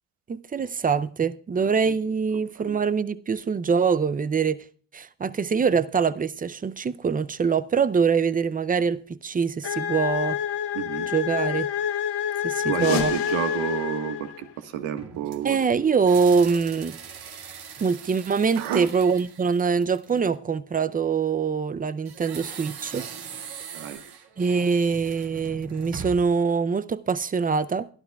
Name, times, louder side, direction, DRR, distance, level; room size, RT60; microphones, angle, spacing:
voice 1, 0.3-4.6 4.9-10.4 11.1-11.7 12.4-13.1 15.4-17.0 17.8-23.1 24.4-27.9, right 5 dB, 20° right, 0.5 m, -24 dB
voice 2, 1.6-2.0 2.3-2.8 10.7-11.1 12.6-15.6 17.4-17.6 18.6-18.9 23.7-24.0, right 10 dB, 85° right, 1.5 m, -31 dB
sound 1, 9.6-14.5, left 9 dB, 55° left, 1.9 m, -28 dB
sound 2, 12.7-15.3, left 9 dB, 85° left, 2.6 m, -36 dB
sound 3, 15.0-20.3 22.0-26.4, right 6 dB, 55° right, 2.0 m, -41 dB
23.0 x 12.5 x 2.3 m
cardioid pair, 105°, 46 cm